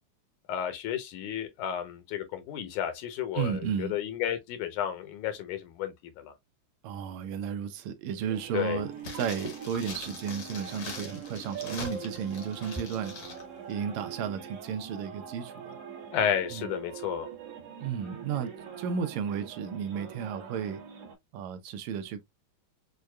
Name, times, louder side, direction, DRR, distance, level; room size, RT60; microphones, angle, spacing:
voice 1, 0.5-6.3 8.5-8.8 16.1-17.3, left 10 dB, 80° left, 2.3 m, -32 dB
voice 2, 3.3-4.0 6.8-13.1 13.7-15.8 16.5-16.7 17.8-18.5 18.8-20.8 21.3-22.2, right 7 dB, 80° right, 1.8 m, -33 dB
sound 1, 8.1-8.6 9.1-10.6 11.5-12.8, right 3 dB, 35° right, 1.2 m, -42 dB
sound 2, 8.3-21.2, right 7 dB, 60° right, 1.9 m, -44 dB
sound 3, 9.0-13.4 13.7-13.8, left 4 dB, 60° left, 1.1 m, -43 dB
6.3 x 2.2 x 2.2 m
omnidirectional pair, 3.5 m